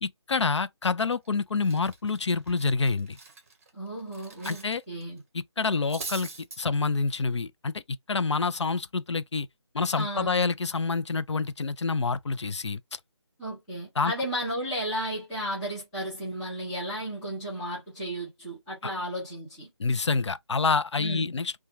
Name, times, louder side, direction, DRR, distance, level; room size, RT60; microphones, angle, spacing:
voice 1, 0.0-3.2 4.5-4.8 5.6-6.3 6.6-9.5 9.7-12.8 14.0-14.1 18.8-18.9 19.8-21.5, left 4 dB, 80° left, 0.4 m, -27 dB
Cutlery silverware, 1.3-1.4 1.6-4.7 5.0-5.2 5.6-6.6, right 4 dB, 30° right, 0.7 m, -42 dB
voice 2, 3.7-5.2 9.9-10.5 13.4-19.7 21.0-21.4, equal, ahead, 0.3 m, -34 dB
2.3 x 2.2 x 3.0 m
figure-of-eight pair, 155°, 15 cm